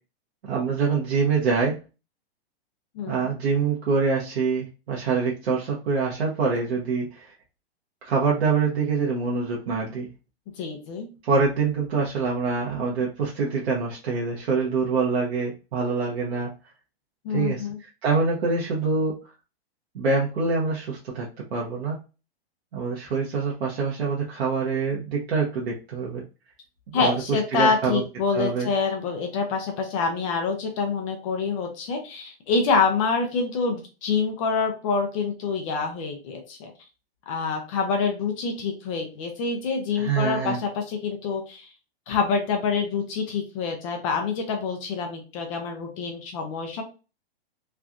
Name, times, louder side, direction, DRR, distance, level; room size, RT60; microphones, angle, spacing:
voice 1, 0.4-1.8 3.1-7.3 8.0-10.1 11.2-16.5 17.3-19.1 19.9-22.0 22.7-26.2 26.9-28.0 28.3-28.7 40.0-40.6, right 4 dB, 75° right, -3 dB, 1.0 m, -25 dB
voice 2, 10.6-11.1 17.2-17.8 26.9-36.7 37.3-41.7 42.1-46.8, left 5 dB, 30° left, 3 dB, 0.5 m, -26 dB
3.2 x 2.3 x 2.5 m, 0.32 s
hypercardioid pair, 150°, 31 cm